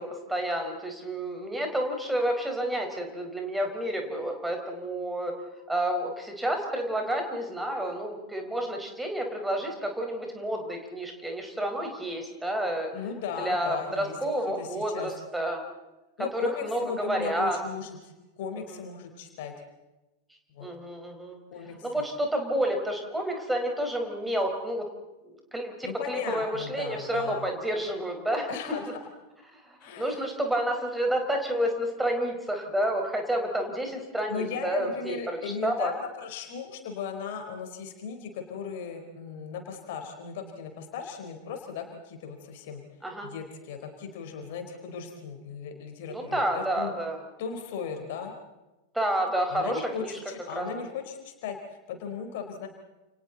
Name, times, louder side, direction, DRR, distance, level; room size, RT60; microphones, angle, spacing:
voice 1, 0.0-5.3 5.7-12.9 13.4-15.6 16.3-17.6 20.6-21.4 21.8-24.9 25.2-28.5 29.5-35.9 43.0-43.3 46.1-47.2 48.9-50.2 50.5-50.7, right 1 dB, 5° right, 2 dB, 4.9 m, -30 dB
voice 2, 12.9-14.2 14.6-15.1 16.2-19.5 20.5-20.7 21.5-22.0 25.8-27.5 28.5-29.0 29.8-30.2 34.3-42.8 43.2-46.9 47.4-48.3 49.5-52.7, left 6 dB, 50° left, 4 dB, 4.1 m, -37 dB
29.5 x 29.5 x 4.1 m, 1.0 s
figure-of-eight pair, 90°, 0 cm